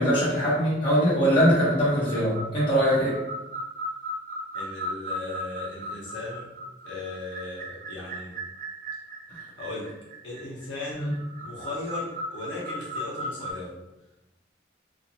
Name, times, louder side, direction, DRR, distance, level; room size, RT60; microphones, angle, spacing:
voice 1, 0.0-3.2 11.0-11.1, equal, 25° left, -9 dB, 1.0 m, -22 dB
sound 1, 1.9-13.5, equal, 45° right, 0.4 m, -37 dB
voice 2, 4.5-6.5 6.8-8.4 9.6-9.9 10.2-11.1 11.4-13.7, left 2 dB, 80° left, -5 dB, 0.7 m, -37 dB
2.4 x 2.2 x 2.7 m, 0.93 s
head